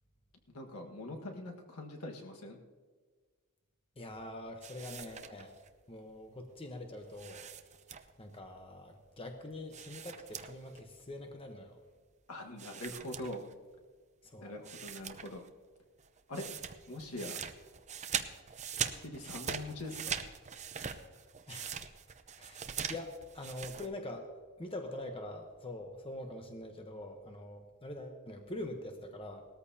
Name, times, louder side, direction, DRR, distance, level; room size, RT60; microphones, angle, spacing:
voice 1, 0.5-2.6 12.3-13.5 14.4-15.4 16.3-17.5 18.8-20.2, left 1 dB, 90° left, 1 dB, 1.6 m, -43 dB
voice 2, 4.0-5.6 5.9-7.5 8.2-11.8 14.2-14.7 21.5-21.8 22.4-24.3 24.6-29.5, left 1 dB, 25° left, 4 dB, 1.0 m, -44 dB
sound 1, 4.6-5.7 7.1-8.3 9.7-10.8 11.1-11.2 12.6-13.8 14.3-14.4 14.6-15.5 15.8-23.9, right 7 dB, 30° right, 0.7 m, -41 dB
19.0 x 13.5 x 2.8 m, 1.5 s
head